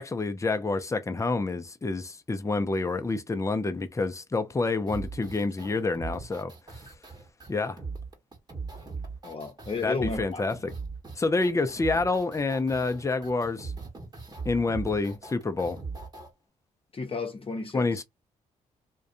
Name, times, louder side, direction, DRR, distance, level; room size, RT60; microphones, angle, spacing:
voice 1, 0.0-6.5 7.5-7.8 9.8-10.7 11.1-13.7 14.4-15.8 17.7-18.0, left 3 dB, 20° left, 0.5 m, -28 dB
sound 1, 4.9-16.3, right 4 dB, 25° right, 1.2 m, -39 dB
voice 2, 9.2-10.6 16.9-17.9, left 4 dB, 35° left, 0.9 m, -33 dB
2.4 x 2.2 x 2.6 m
hypercardioid pair, 50°, 17 cm